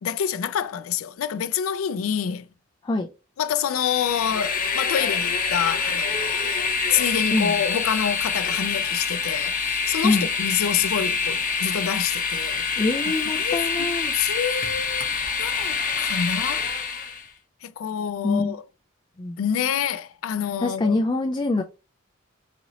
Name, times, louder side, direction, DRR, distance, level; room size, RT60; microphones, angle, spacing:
voice 1, 0.0-2.5 3.4-15.1 15.4-16.7 17.6-18.6 19.4-21.0, left 8 dB, 90° left, 0.4 m, -27 dB
Train, 3.8-17.3, left 5 dB, 45° left, 0.9 m, -26 dB
voice 2, 12.8-14.1 18.2-18.5 19.2-19.4 20.6-21.6, left 2 dB, 25° left, 0.4 m, -24 dB
4.2 x 2.9 x 2.7 m
head